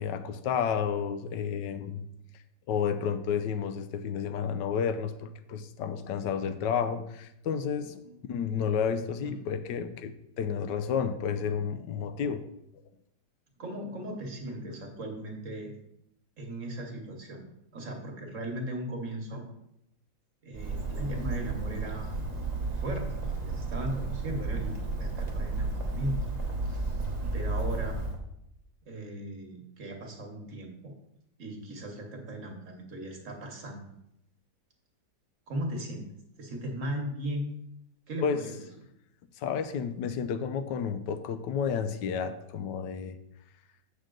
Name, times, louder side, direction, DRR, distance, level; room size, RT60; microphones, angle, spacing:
voice 1, 0.0-2.0 2.7-8.0 8.3-12.4 38.2-38.4 39.3-43.2, left 7 dB, 80° left, 10 dB, 1.3 m, -31 dB
voice 2, 13.6-15.7 16.4-17.4 17.7-19.4 20.4-22.2 22.8-23.1 23.4-26.2 27.3-28.0 28.8-30.9 31.4-34.0 35.5-36.1 36.4-37.6 38.1-38.5, right 1 dB, 50° right, 2 dB, 1.4 m, -37 dB
Bird, 20.5-28.2, right 3 dB, 30° right, 0.8 m, -32 dB
7.7 x 6.3 x 3.8 m, 0.79 s
omnidirectional pair, 1.9 m